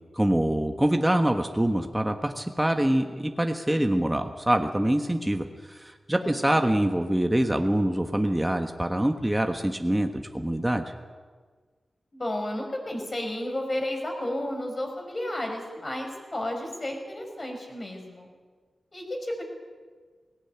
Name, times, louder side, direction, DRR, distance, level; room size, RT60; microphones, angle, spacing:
voice 1, 0.1-10.8, right 1 dB, 10° right, 5 dB, 1.4 m, -25 dB
voice 2, 6.2-6.8 12.1-18.3 18.9-19.4, left 1 dB, 35° left, 2 dB, 5.7 m, -32 dB
18.5 x 18.0 x 8.9 m, 1.5 s
wide cardioid pair, 70°, 0 cm